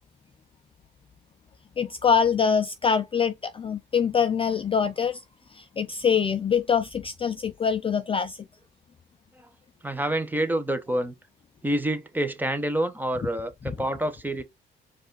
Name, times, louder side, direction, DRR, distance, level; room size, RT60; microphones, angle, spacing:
voice 1, 1.8-5.2 5.5-8.4, left 6 dB, 25° left, 0.4 m, -24 dB
voice 2, 9.8-11.1 11.6-14.4, right 1 dB, 10° right, 0.9 m, -27 dB
4.8 x 2.5 x 3.8 m
cardioid pair, 90°, 20 cm